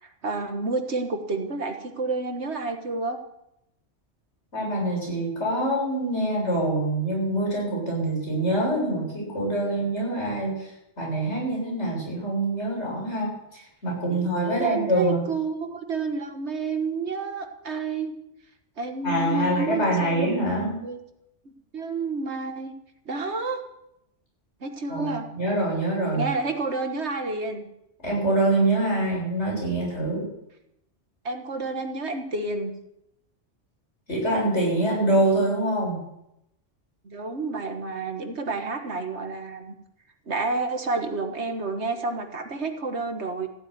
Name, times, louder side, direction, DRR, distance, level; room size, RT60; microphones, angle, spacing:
voice 1, 0.0-3.2 14.1-18.1 18.8-21.0 21.7-22.7 23.1-23.6 24.6-25.3 26.1-27.7 31.2-32.7 37.0-39.7 40.3-43.5, right 3 dB, 65° right, 5 dB, 1.9 m, -30 dB
voice 2, 4.5-10.7 11.0-15.3 19.0-20.7 24.9-26.2 28.0-30.3 34.1-36.0, right 1 dB, 70° left, -3 dB, 7.7 m, -25 dB
15.5 x 8.9 x 9.4 m, 0.83 s
omnidirectional pair, 1.2 m